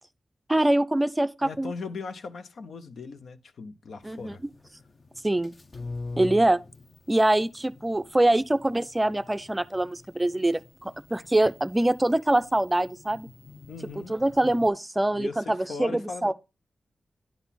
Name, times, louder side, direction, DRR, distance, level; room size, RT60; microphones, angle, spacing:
voice 1, 0.5-1.7 4.0-4.4 5.2-5.5 6.2-6.6 7.1-13.3 14.1-16.3, right 1 dB, 15° right, 0.4 m, -24 dB
voice 2, 1.4-4.4 13.7-14.2 15.1-16.3, left 4 dB, 85° left, 0.7 m, -39 dB
sound 1, 4.0-14.7, left 3 dB, 45° left, 0.8 m, -45 dB
10.5 x 4.0 x 5.7 m
wide cardioid pair, 100°, 0 cm